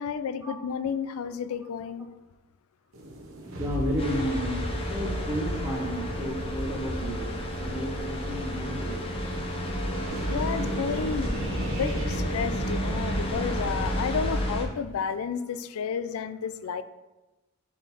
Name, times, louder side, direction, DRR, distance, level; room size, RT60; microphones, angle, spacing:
voice 1, 0.0-2.1 10.3-16.8, left 6 dB, 75° left, 13 dB, 0.4 m, -31 dB
sound 1, 2.9-14.4, right 1 dB, 65° right, 0.9 m, -36 dB
voice 2, 3.4-7.3 7.6-9.1, equal, 10° right, -2 dB, 1.0 m, -32 dB
sound 2, 4.0-14.6, equal, 25° left, 0.6 m, -32 dB
4.8 x 3.9 x 5.4 m, 1.1 s
head